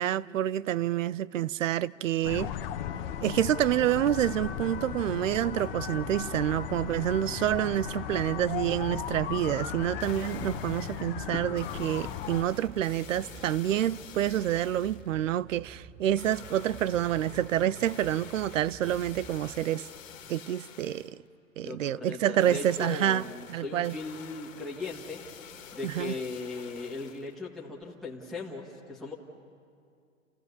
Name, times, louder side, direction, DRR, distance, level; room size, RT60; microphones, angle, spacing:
voice 1, 0.0-2.5 3.2-19.9 20.3-21.2 21.6-24.0 25.8-26.1, right 11 dB, 70° right, 0.6 m, -28 dB
sound 1, 2.2-12.5, left 10 dB, 45° left, 1.2 m, -36 dB
sound 2, 4.6-19.9, right 5 dB, 30° right, 0.8 m, -49 dB
sound 3, 9.8-11.1 11.5-15.1 16.2-21.1 22.4-27.3 27.8-27.9, left 7 dB, 75° left, 1.9 m, -48 dB
voice 2, 21.6-25.2 25.7-29.1, left 3 dB, ahead, 1.7 m, -38 dB
29.5 x 15.0 x 7.0 m
hypercardioid pair, 120°, 39 cm